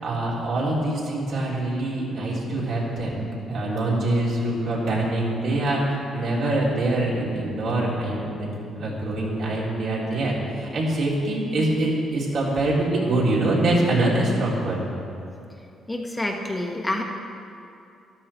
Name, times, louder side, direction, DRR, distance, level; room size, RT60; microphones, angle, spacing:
voice 1, 0.0-14.9, right 1 dB, 70° right, -5 dB, 3.4 m, -24 dB
voice 2, 15.9-17.0, left 1 dB, 15° left, 1 dB, 1.3 m, -27 dB
13.5 x 11.5 x 4.4 m, 2.6 s
cardioid pair, 90°, 0 cm